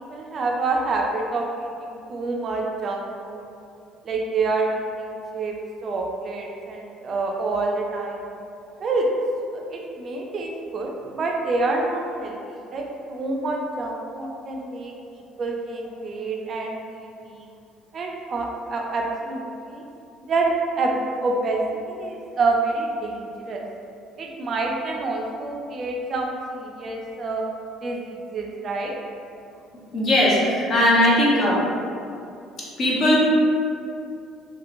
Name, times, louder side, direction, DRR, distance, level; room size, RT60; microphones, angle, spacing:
voice 1, 0.0-3.5 4.0-5.6 5.8-8.2 8.8-9.1 9.5-17.5 17.9-19.8 20.3-20.5 20.8-21.6 21.9-23.6 24.2-27.4 27.8-29.0 31.0-31.1, right 3 dB, 45° right, 0 dB, 0.4 m, -27 dB
voice 2, 29.9-31.6 32.8-33.2, left 1 dB, 50° left, -5 dB, 0.8 m, -18 dB
2.9 x 2.9 x 2.5 m, 2.6 s
cardioid pair, 110°, 0 cm